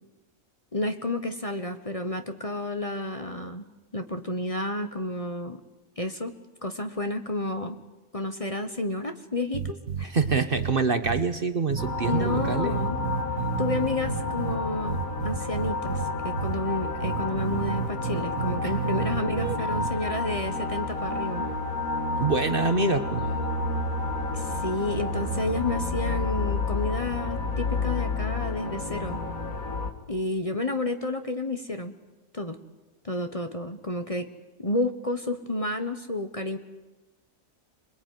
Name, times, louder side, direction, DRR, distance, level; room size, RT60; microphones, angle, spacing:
voice 1, 0.7-3.7 3.9-5.6 6.0-6.4 6.6-7.8 8.1-10.1 12.1-13.0 13.6-21.5 24.3-29.2 30.1-31.9 32.3-32.6 33.0-34.3 34.6-36.6, left 2 dB, 25° left, 7 dB, 1.3 m, -31 dB
sound 1, 9.5-10.7 11.0-11.2 11.7-14.6 14.9-16.1 16.4-16.5 17.0-19.9, right 8 dB, 80° right, 1.6 m, -31 dB
voice 2, 10.0-12.7 18.6-18.7 19.4-19.6 22.2-23.3, right 3 dB, 45° right, 9 dB, 1.4 m, -26 dB
sound 2, 11.8-29.9, left 3 dB, 85° left, 2.4 m, -30 dB
26.5 x 21.5 x 9.5 m, 1.1 s
omnidirectional pair, 1.4 m